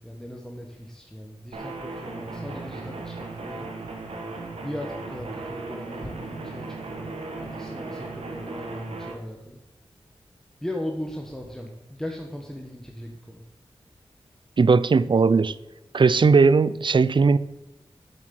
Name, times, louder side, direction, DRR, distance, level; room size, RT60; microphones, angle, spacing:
voice 1, 0.0-3.7 4.6-9.6 10.6-13.4, left 1 dB, 5° left, 1.5 m, -37 dB
sound 1, 1.5-9.1, right 3 dB, 85° right, 1.7 m, -36 dB
voice 2, 14.6-15.6 15.9-17.4, right 4 dB, 55° right, 0.5 m, -18 dB
7.8 x 7.6 x 7.7 m
cardioid pair, 55°, 10 cm